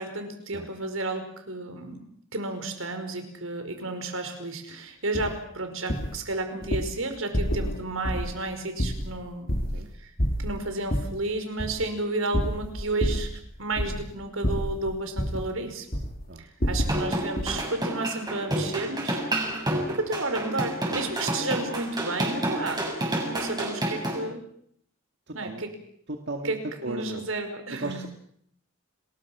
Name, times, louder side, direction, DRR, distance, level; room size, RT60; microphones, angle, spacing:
voice 1, 0.0-2.0 2.3-9.5 10.0-10.1 10.4-13.3 13.6-15.9 16.4-19.2 19.9-22.9 23.2-24.4 25.3-25.7 26.4-28.1, right 2 dB, 80° right, 6 dB, 5.1 m, -32 dB
sound 1, 5.1-5.4 5.9-6.2 6.6-6.9 7.3-7.8 8.0-8.4 8.8-9.9 10.2-11.2 11.6-11.9 12.3-13.4 13.7-14.1 14.4-15.5 15.9-16.2 16.6-17.0 17.4-17.6, equal, 45° left, 2.9 m, -28 dB
voice 2, 16.3-16.8 18.5-18.7 25.3-25.7 26.1-26.6 26.8-27.3 27.7-28.1, right 2 dB, 55° right, 3 dB, 2.1 m, -36 dB
sound 2, 16.8-24.2, right 1 dB, 20° right, 6.4 m, -29 dB
30.0 x 21.5 x 6.1 m, 0.69 s
head